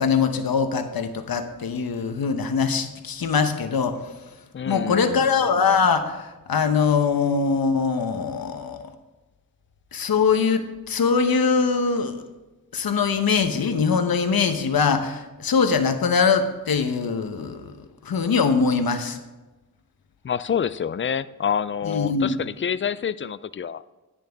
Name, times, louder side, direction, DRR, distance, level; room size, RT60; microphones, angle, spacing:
voice 1, 0.0-4.0 4.7-8.8 9.9-12.1 12.7-17.7 18.0-19.2 21.9-22.4, left 5 dB, 75° left, 8 dB, 1.0 m, -22 dB
voice 2, 4.5-5.3 20.2-23.8, left 7 dB, 35° left, 16 dB, 0.4 m, -27 dB
10.5 x 9.1 x 3.5 m, 1.1 s
cardioid pair, 65°, 36 cm